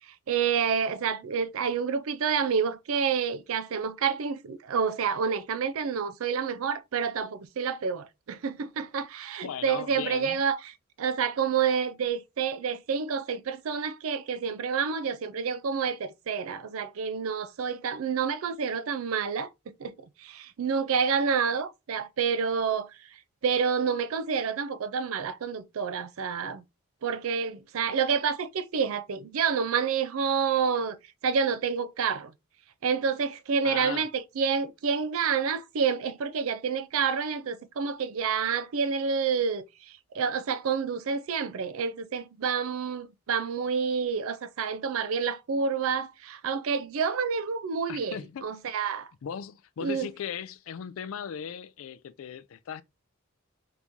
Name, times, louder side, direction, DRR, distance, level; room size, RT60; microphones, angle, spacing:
voice 1, 0.1-19.9 20.2-22.9 23.4-26.6 27.0-31.0 31.2-32.3 32.8-39.7 40.1-49.1 49.8-50.1, right 6 dB, 70° right, 0.4 m, -28 dB
voice 2, 9.4-10.4 33.6-34.1 47.9-48.4 49.2-52.8, left 8 dB, 65° left, 0.3 m, -38 dB
3.0 x 2.6 x 3.4 m
head